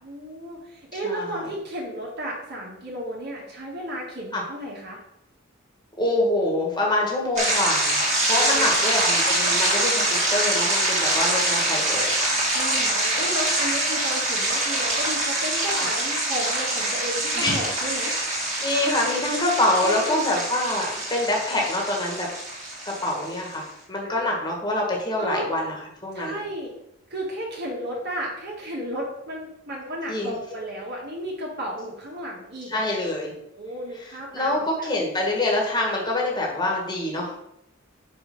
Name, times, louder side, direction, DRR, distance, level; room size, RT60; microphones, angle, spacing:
voice 1, 0.0-5.0 8.3-9.0 12.5-18.1 19.8-20.2 25.2-25.4 26.1-26.7 27.1-33.0 33.5-34.9, right 1 dB, 55° right, -3 dB, 1.8 m, -33 dB
voice 2, 1.0-1.5 4.3-4.4 6.0-8.0 8.3-12.1 17.3-17.6 18.6-22.3 22.8-25.7 26.0-26.3 30.1-30.4 32.7-33.3 34.0-37.4, left 1 dB, 20° left, -2 dB, 1.7 m, -25 dB
sound 1, 7.4-23.5, right 1 dB, 35° right, 1.9 m, -24 dB
5.4 x 5.1 x 5.4 m, 0.79 s
head